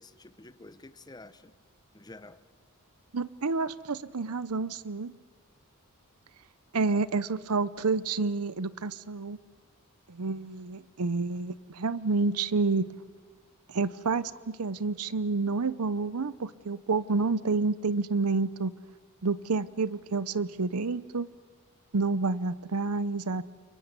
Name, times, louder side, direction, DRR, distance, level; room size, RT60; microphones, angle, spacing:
voice 1, 0.0-1.5 1.9-2.4, left 2 dB, 20° left, 13 dB, 0.9 m, -49 dB
voice 2, 3.1-5.1 6.7-9.4 10.1-12.9 13.7-18.7 19.2-21.3 21.9-23.4, right 3 dB, 80° right, 17 dB, 0.8 m, -29 dB
29.5 x 23.5 x 8.3 m, 1.4 s
head